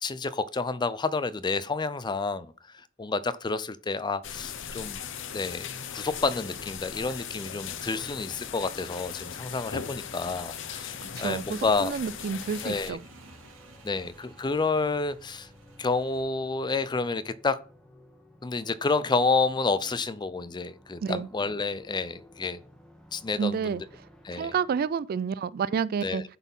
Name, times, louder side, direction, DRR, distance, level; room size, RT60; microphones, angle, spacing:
voice 1, 0.0-2.5 3.0-5.0 5.3-5.7 5.9-11.9 12.6-13.0 13.8-15.5 15.8-17.6 18.4-22.6 23.1-23.9 24.2-24.5 26.0-26.2, left 3 dB, 20° left, 0.4 m, -29 dB
sound 1, 4.2-12.9, left 7 dB, 65° left, 0.8 m, -39 dB
sound 2, 5.5-24.8, left 1 dB, 5° left, 1.2 m, -54 dB
Motorcycle / Engine, 8.7-16.2, right 2 dB, 85° right, 2.7 m, -56 dB
voice 2, 11.2-13.0 21.0-21.3 23.4-23.8 24.3-26.2, right 6 dB, 50° right, 0.3 m, -29 dB
11.0 x 4.2 x 5.4 m
head